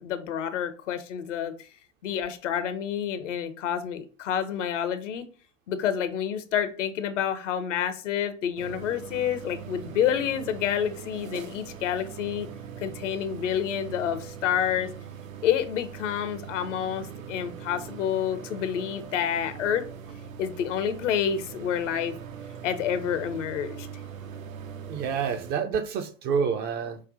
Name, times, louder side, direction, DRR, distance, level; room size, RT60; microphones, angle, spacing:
voice 1, 0.0-1.7 2.0-5.3 5.7-12.5 12.8-14.9 15.4-19.8 20.4-22.1 22.6-23.9, left 9 dB, 65° left, 0.7 m, -28 dB
sound 1, 8.6-25.5, right 7 dB, 75° right, 0.6 m, -41 dB
voice 2, 24.9-27.0, right 6 dB, 25° right, 0.4 m, -28 dB
5.2 x 2.1 x 3.8 m
figure-of-eight pair, 85°, 40 cm